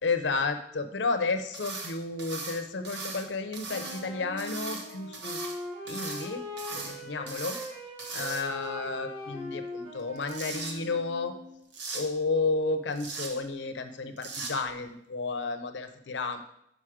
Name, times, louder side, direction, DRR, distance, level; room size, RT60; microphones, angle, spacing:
voice 1, 0.0-5.4 5.8-6.4 6.7-7.5 8.1-11.3 11.9-16.4, left 3 dB, 90° left, 8 dB, 0.7 m, -32 dB
sound 1, 1.5-1.9 2.2-3.2 3.5-4.0 4.4-5.6 5.9-6.3 6.6-6.9 7.3-7.7 8.0-8.7 10.0-10.7 11.7-12.0 12.9-13.3 14.2-14.5, right 4 dB, 75° right, 1.2 m, -38 dB
Wind instrument woodwind instrument, 3.7-11.7, left 1 dB, 45° right, 2.1 m, -41 dB
5.3 x 4.8 x 6.2 m, 0.77 s
head